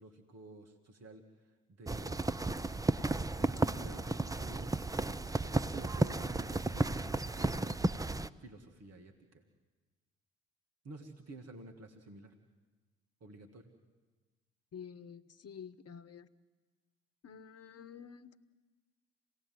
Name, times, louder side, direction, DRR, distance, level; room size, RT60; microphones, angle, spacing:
voice 1, 0.0-2.2 3.4-4.8 5.4-7.8 8.4-9.4 10.8-12.3 13.2-13.7, right 2 dB, 45° right, 3 dB, 2.2 m, -52 dB
sound 1, 1.9-8.3, right 2 dB, 10° right, 0.8 m, -33 dB
voice 2, 14.7-16.3 17.2-18.4, left 7 dB, 45° left, 13 dB, 1.2 m, -49 dB
27.0 x 18.0 x 7.9 m, 1.3 s
hypercardioid pair, 45°, 34 cm